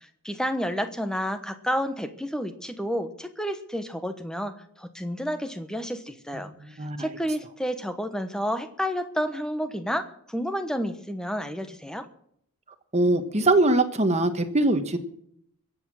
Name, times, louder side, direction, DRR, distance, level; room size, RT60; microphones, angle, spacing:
voice 1, 0.2-12.1, equal, 5° left, 9 dB, 1.1 m, -30 dB
voice 2, 6.6-7.0 12.9-15.0, right 2 dB, 30° right, 9 dB, 1.2 m, -22 dB
22.0 x 8.2 x 6.3 m, 0.69 s
head